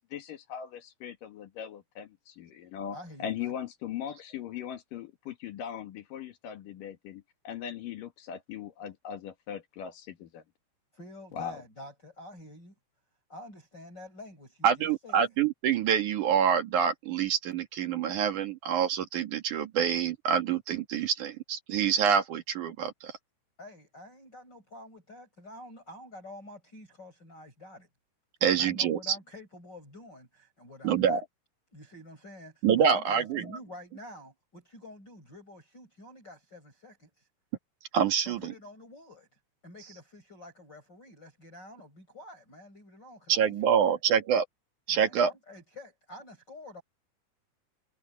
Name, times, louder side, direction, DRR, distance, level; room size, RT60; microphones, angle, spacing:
voice 1, 0.0-10.4 11.3-11.6, left 9 dB, 60° left, 2.8 m, -39 dB
voice 2, 2.9-3.5 10.9-12.8 13.3-15.3 23.6-27.9 28.5-31.2 31.7-37.3 38.2-43.9 44.9-46.8, left 1 dB, 20° left, 7.2 m, -48 dB
voice 3, 14.6-23.1 28.4-29.2 30.8-31.2 32.6-33.5 37.9-38.4 43.3-44.4 44.9-45.3, right 8 dB, 55° right, 2.5 m, -26 dB
omnidirectional pair, 5.3 m